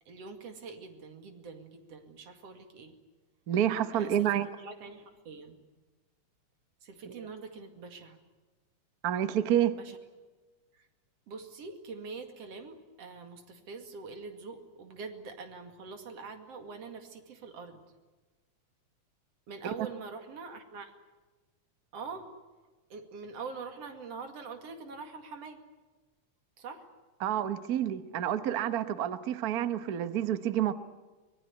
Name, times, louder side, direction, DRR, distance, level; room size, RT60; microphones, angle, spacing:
voice 1, 0.1-2.9 3.9-5.6 6.8-8.2 9.7-10.0 10.7-10.9 11.3-17.8 19.5-20.9 21.9-22.3 22.9-25.6 26.6-26.9, right 4 dB, 60° right, 6 dB, 3.2 m, -44 dB
voice 2, 3.5-4.5 7.1-7.2 9.0-9.8 27.2-30.7, right 10 dB, 85° right, 11 dB, 0.8 m, -29 dB
24.5 x 20.0 x 9.6 m, 1.3 s
omnidirectional pair, 3.3 m